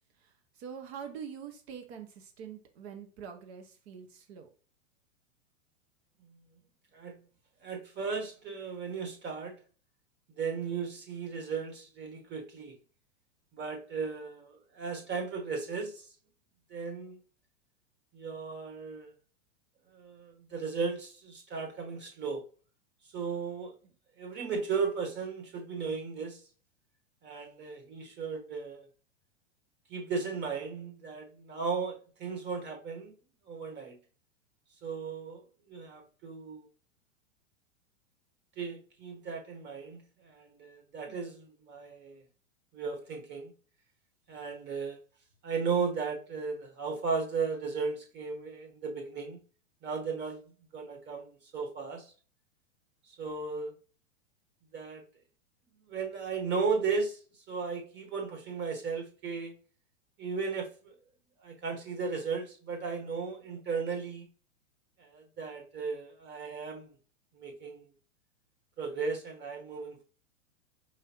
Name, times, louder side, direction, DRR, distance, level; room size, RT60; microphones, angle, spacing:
voice 1, 0.2-4.5 41.1-41.2, right 7 dB, 55° right, 1.0 m, -45 dB
voice 2, 7.6-9.5 10.4-12.7 13.5-16.1 16.7-17.2 18.1-19.1 19.9-22.4 23.1-23.7 24.2-26.4 27.2-28.9 29.9-33.1 33.5-34.0 34.8-35.4 35.7-36.6 38.6-42.2 42.7-43.5 44.3-45.0 45.4-49.4 49.8-50.4 50.7-52.1 53.2-53.7 54.7-55.0 55.9-57.2 57.5-59.5 60.2-60.9 61.4-64.3 65.0-66.9 67.3-67.8 68.8-70.0, right 5 dB, 30° right, 1.4 m, -35 dB
4.9 x 3.6 x 3.0 m
hypercardioid pair, 110°, 38 cm